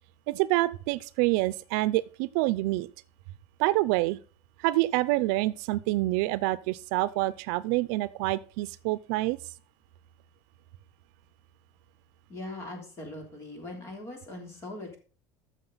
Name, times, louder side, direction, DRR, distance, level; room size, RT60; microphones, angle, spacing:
voice 1, 0.3-2.9 3.6-4.2 4.6-9.4, right 19 dB, 70° right, 0.6 m, -27 dB
voice 2, 12.3-15.0, left 2 dB, 30° left, 3.2 m, -40 dB
13.5 x 6.5 x 4.0 m
cardioid pair, 175°, 9 cm